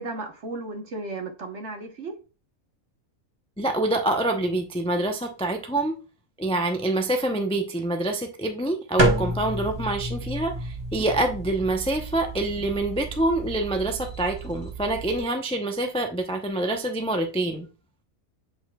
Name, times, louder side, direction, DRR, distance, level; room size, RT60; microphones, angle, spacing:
voice 1, 0.0-2.2, right 2 dB, 55° right, 1.4 m, -34 dB
voice 2, 3.6-6.0 6.4-17.7, right 2 dB, 5° left, 0.5 m, -26 dB
sound 1, 9.0-15.2, right 2 dB, 20° right, 0.9 m, -30 dB
8.0 x 5.1 x 2.3 m
omnidirectional pair, 1.5 m